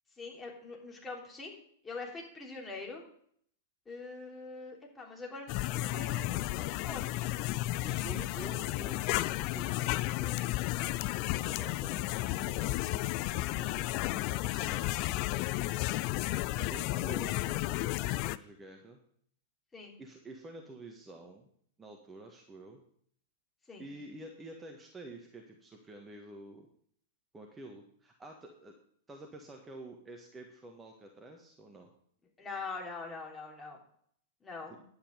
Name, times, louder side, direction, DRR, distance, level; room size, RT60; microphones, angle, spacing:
voice 1, 0.2-3.0 3.9-7.1 19.7-19.9 23.7-23.9 32.4-33.8 34.4-34.8, left 3 dB, 15° left, -1 dB, 3.1 m, -43 dB
sound 1, 5.5-18.4, left 18 dB, 45° left, 0.4 m, -33 dB
voice 2, 7.8-10.7 11.4-15.8 16.6-19.0 20.0-21.5 21.8-22.8 23.8-26.7 27.3-28.7 29.1-31.9 34.7-34.8, right 2 dB, 15° right, 2 dB, 1.6 m, -49 dB
10.5 x 8.8 x 5.2 m, 0.62 s
figure-of-eight pair, 100°, 0 cm